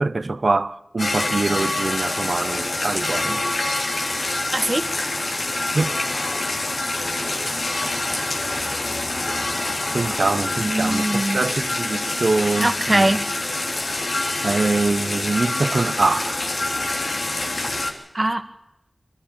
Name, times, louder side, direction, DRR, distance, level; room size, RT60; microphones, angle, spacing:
voice 1, 0.0-3.5 5.7-6.0 9.9-13.2 14.4-16.4, right 3 dB, 60° right, 0.8 m, -24 dB
sound 1, 1.0-17.9, left 2 dB, 80° left, 3.4 m, -26 dB
voice 2, 4.5-4.9 10.6-11.4 12.6-13.2 18.1-18.4, right 1 dB, 35° right, 1.6 m, -21 dB
22.5 x 14.0 x 8.8 m
wide cardioid pair, 70°, 0 cm